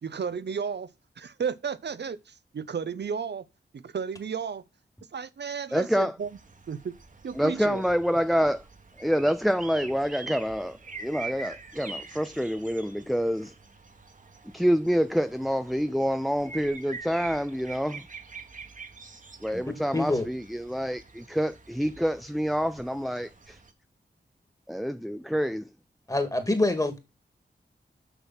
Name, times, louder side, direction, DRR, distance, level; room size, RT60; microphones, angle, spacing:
voice 1, 0.0-3.4 3.7-4.6 5.1-6.3 6.7-6.9 7.2-7.8, right 6 dB, 70° right, 0.7 m, -33 dB
voice 2, 5.7-6.2 7.4-8.6 9.0-13.5 14.5-18.1 19.4-23.6 24.7-25.7, equal, ahead, 0.4 m, -27 dB
sound 1, 6.2-23.7, right 4 dB, 45° right, 1.4 m, -45 dB
voice 3, 19.7-20.3 26.1-27.0, left 2 dB, 20° left, 2.0 m, -26 dB
6.9 x 6.2 x 5.6 m
wide cardioid pair, 90°, 18 cm